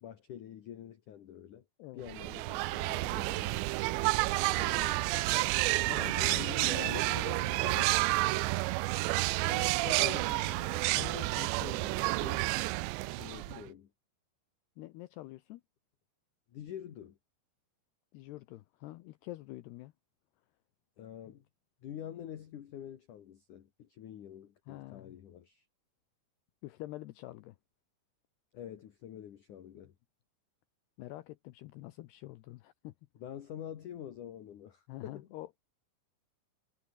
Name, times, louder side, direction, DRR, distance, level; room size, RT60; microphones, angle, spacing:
voice 1, 0.0-1.6 1.9-3.7 4.4-5.6 6.1-7.7 9.4-12.6 13.2-13.9 16.5-17.2 21.0-21.4 21.8-25.6 28.5-29.9 33.2-35.3, left 10 dB, 55° left, 2.5 m, -46 dB
sound 1, 2.1-13.7, right 21 dB, 80° right, 2.6 m, -30 dB
voice 2, 5.9-8.2 13.5-13.7 14.8-15.6 18.1-19.9 24.7-25.2 26.6-27.6 31.0-32.9 34.9-35.6, left 17 dB, 80° left, 2.4 m, -46 dB
omnidirectional pair, 5.7 m